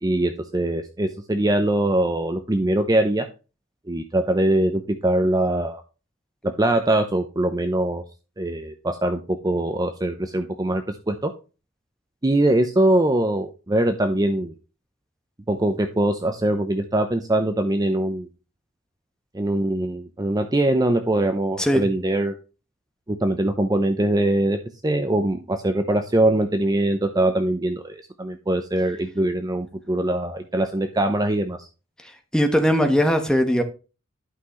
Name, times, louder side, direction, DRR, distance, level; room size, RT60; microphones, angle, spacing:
voice 1, 0.0-3.2 3.9-5.8 6.6-8.0 8.4-11.3 12.2-14.5 15.5-18.3 19.3-22.3 23.1-24.6 24.8-31.7, right 1 dB, 20° right, 0.6 m, -22 dB
voice 2, 32.0-33.6, equal, 5° left, 1.2 m, -20 dB
11.0 x 5.9 x 3.1 m
head